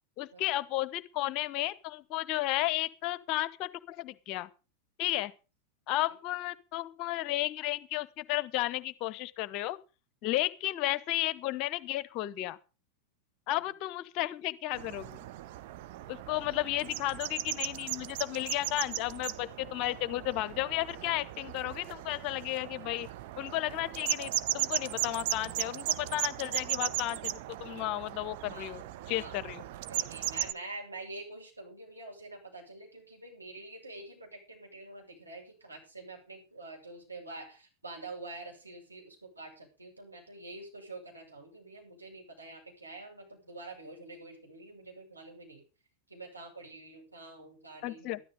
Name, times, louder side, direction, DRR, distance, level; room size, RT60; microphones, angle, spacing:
voice 1, 0.2-4.5 5.0-5.3 5.9-9.8 10.2-12.6 13.5-15.2 16.1-23.1 23.4-28.8 29.1-29.6 47.8-48.2, left 16 dB, 40° left, 0.9 m, -33 dB
sound 1, 14.7-30.5, right 14 dB, 50° right, 0.8 m, -37 dB
voice 2, 28.5-28.8 29.1-29.4 29.9-45.6 46.1-48.2, right 2 dB, 85° right, 7.1 m, -46 dB
13.0 x 13.0 x 5.1 m
figure-of-eight pair, 90°, 0 cm